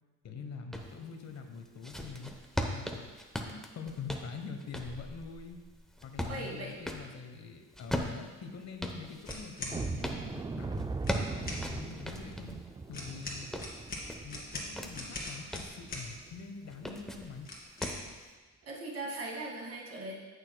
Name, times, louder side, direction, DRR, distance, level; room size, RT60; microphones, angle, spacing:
voice 1, 0.2-2.3 2.7-3.1 3.5-5.6 6.0-10.9 11.4-12.6 12.9-13.5 14.2-17.5, left 5 dB, 60° left, 5 dB, 1.2 m, -44 dB
sound 1, 0.7-0.9 1.5-7.1 7.7-10.2 10.8-12.6 13.1-14.9 15.3-15.8 16.7-17.3 17.8-18.1, equal, ahead, 0.9 m, -38 dB
voice 2, 6.3-6.8 18.7-20.1, right 2 dB, 55° right, -2 dB, 2.4 m, -39 dB
sound 2, 9.2-9.8 11.0-11.6 12.9-16.1 17.4-18.0, left 2 dB, 30° left, 2.4 m, -41 dB
sound 3, 9.7-16.4 16.8-16.9 17.4-17.5 18.0-18.2, right 3 dB, 15° right, 0.3 m, -40 dB
14.0 x 6.6 x 2.3 m, 1.3 s
cardioid pair, 90°, 30 cm